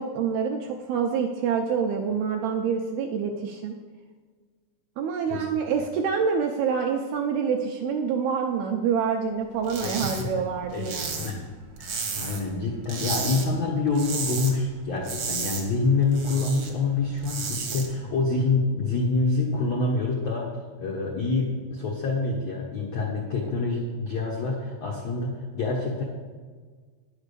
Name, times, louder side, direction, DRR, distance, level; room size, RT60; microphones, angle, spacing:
voice 1, 0.0-3.7 5.0-11.3, right 6 dB, 80° right, 2 dB, 2.3 m, -27 dB
sound 1, 9.6-10.2 10.5-12.5 12.8-13.4 13.8-14.5 14.8-16.7 17.1-17.8, right 5 dB, 60° right, 1.5 m, -32 dB
voice 2, 10.7-11.4 11.8-20.5 20.8-26.0, left 3 dB, 75° left, -2 dB, 1.5 m, -26 dB
10.5 x 7.2 x 6.8 m, 1.5 s
omnidirectional pair, 5.2 m